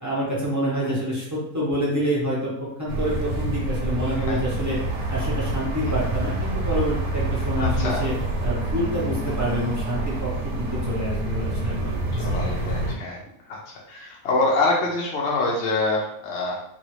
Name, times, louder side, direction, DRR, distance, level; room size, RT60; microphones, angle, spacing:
voice 1, 0.0-2.5 2.8-4.8 5.1-8.1 8.4-10.3 10.6-12.3, equal, 15° right, -7 dB, 0.6 m, -27 dB
sound 1, 2.9-13.0, right 2 dB, 85° right, 1.2 m, -27 dB
voice 2, 7.6-8.0 12.1-13.2 13.5-13.6 13.9-16.6, left 3 dB, 60° left, -3 dB, 0.7 m, -25 dB
2.7 x 2.7 x 3.0 m, 0.72 s
omnidirectional pair, 1.7 m